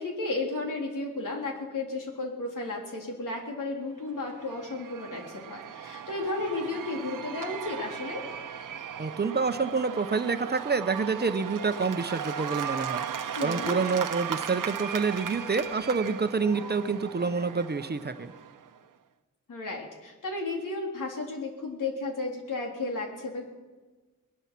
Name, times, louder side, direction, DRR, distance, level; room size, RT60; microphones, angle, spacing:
voice 1, 0.0-8.2 13.3-13.7 19.5-23.5, left 2 dB, 80° left, 0 dB, 3.3 m, -33 dB
Cheering / Applause / Crowd, 4.1-18.8, right 8 dB, 80° right, 0.9 m, -37 dB
voice 2, 9.0-13.1 13.4-18.3, right 4 dB, 30° right, 10 dB, 0.8 m, -28 dB
20.0 x 11.5 x 6.0 m, 1.3 s
wide cardioid pair, 90°, 31 cm